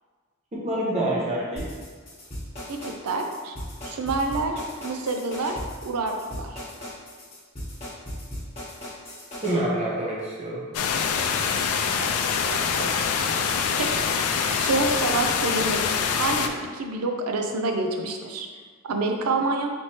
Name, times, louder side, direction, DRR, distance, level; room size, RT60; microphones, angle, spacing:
voice 1, 0.5-1.7 9.4-10.6, right 1 dB, 30° right, -6 dB, 0.7 m, -26 dB
sound 1, 1.6-9.5, equal, 30° left, 1.2 m, -37 dB
voice 2, 2.7-3.5 3.8-6.6 12.0-12.1 12.4-13.4 13.8-14.1 14.3-15.8 16.2-18.5 18.8-19.7, right 3 dB, 85° right, 4 dB, 0.5 m, -28 dB
sound 2, 10.7-16.5, left 6 dB, 90° left, 0.3 m, -25 dB
4.3 x 3.2 x 2.9 m, 1.5 s
head